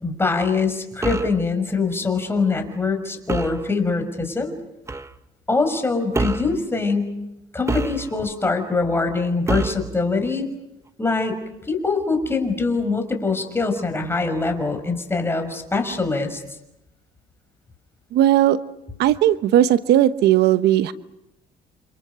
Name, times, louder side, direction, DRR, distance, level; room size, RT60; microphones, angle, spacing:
voice 1, 0.0-4.5 5.5-7.1 7.5-10.5 11.0-11.4 11.7-16.4, left 4 dB, 15° left, 6 dB, 5.9 m, -23 dB
sound 1, 1.0-1.4 3.3-3.6 4.9-5.1 6.1-6.6 7.7-8.3 9.5-9.9, right 3 dB, 15° right, 1.2 m, -26 dB
voice 2, 18.1-18.6 19.0-20.9, right 12 dB, 75° right, 12 dB, 1.1 m, -17 dB
30.0 x 27.5 x 6.9 m, 0.87 s
cardioid pair, 110°, 17 cm